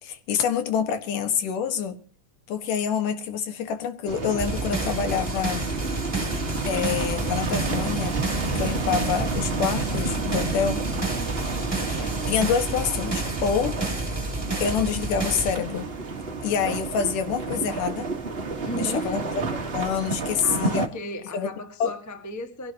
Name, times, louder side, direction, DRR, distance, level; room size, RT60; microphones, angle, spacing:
voice 1, 0.0-2.0 2.5-5.7 6.7-8.2 8.5-10.8 11.9-13.8 14.6-15.9 16.4-18.1 18.7-19.2 19.7-20.9 21.3-21.5 21.8-21.9, left 7 dB, 80° left, 3.1 m, -27 dB
sound 1, 4.1-20.9, right 3 dB, 50° right, 0.7 m, -30 dB
sound 2, 4.4-15.5, right 2 dB, 10° right, 2.1 m, -31 dB
voice 2, 18.6-19.3 20.4-22.7, left 1 dB, 25° left, 0.3 m, -35 dB
22.5 x 16.5 x 2.9 m
omnidirectional pair, 3.6 m